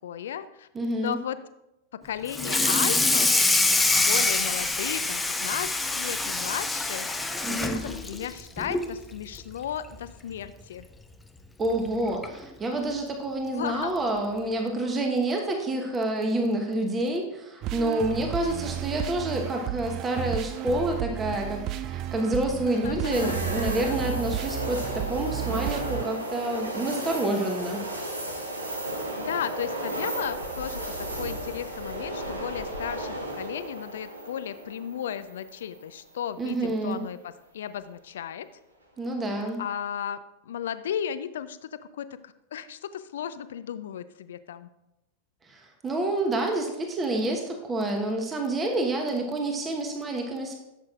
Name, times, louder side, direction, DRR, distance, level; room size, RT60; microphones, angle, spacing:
voice 1, 0.0-0.7 1.0-1.4 1.9-7.1 7.5-10.9 13.5-13.9 22.7-23.3 29.2-38.5 39.6-44.7, left 9 dB, 60° left, 14 dB, 0.4 m, -35 dB
voice 2, 0.7-1.2 7.4-7.8 11.6-27.8 36.4-37.0 39.0-39.6 45.5-50.5, right 1 dB, 20° right, 3 dB, 1.2 m, -28 dB
Water tap faucet / Sink (filling or washing), 2.3-8.9 9.3-9.6 9.9-10.0 10.4-10.5 11.7-11.8 12.2-12.4, left 2 dB, 10° left, 0.6 m, -25 dB
sound 1, 17.6-26.0, right 12 dB, 40° right, 0.3 m, -33 dB
sound 2, 23.1-36.1 36.5-36.6 39.1-39.5, right 1 dB, 80° right, 1.3 m, -34 dB
11.5 x 7.4 x 2.5 m, 0.92 s
figure-of-eight pair, 90°, 0 cm